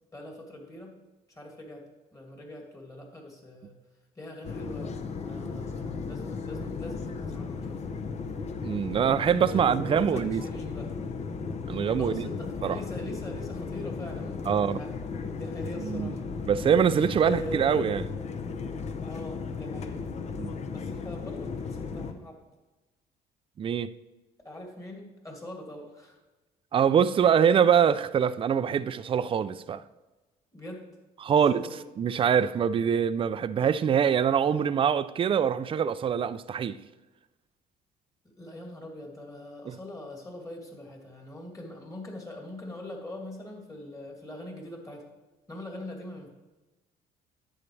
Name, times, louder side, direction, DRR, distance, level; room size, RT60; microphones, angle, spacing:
voice 1, 0.1-0.9 1.3-1.8 2.1-3.7 4.1-4.9 5.2-7.8 9.4-10.9 12.0-14.9 15.3-16.2 17.2-17.8 19.1-20.0 20.7-22.4 24.4-26.2 30.5-30.8 31.3-31.9 38.4-45.1 45.5-46.3, left 1 dB, 20° left, 2.6 m, -42 dB
sound 1, 4.4-22.1, left 5 dB, 40° left, 0.8 m, -35 dB
voice 2, 8.6-10.4 11.7-12.3 12.6-12.8 14.5-14.8 15.8-16.1 16.5-18.0 20.4-20.5 23.6-23.9 26.7-29.8 31.2-31.6 32.0-36.8 39.7-39.8, right 8 dB, 30° right, 0.4 m, -24 dB
11.0 x 8.7 x 3.3 m
cardioid pair, 110°, 17 cm